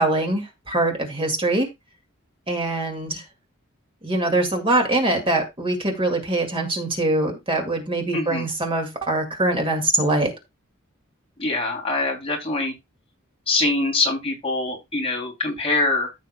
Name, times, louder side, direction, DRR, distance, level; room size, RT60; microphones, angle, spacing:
voice 1, 0.0-1.7 2.5-3.2 4.0-10.3, right 2 dB, 25° right, 2.1 m, -23 dB
voice 2, 8.1-8.5 11.4-12.8 13.5-16.1, left 2 dB, 30° left, 2.9 m, -24 dB
14.5 x 6.3 x 2.2 m
head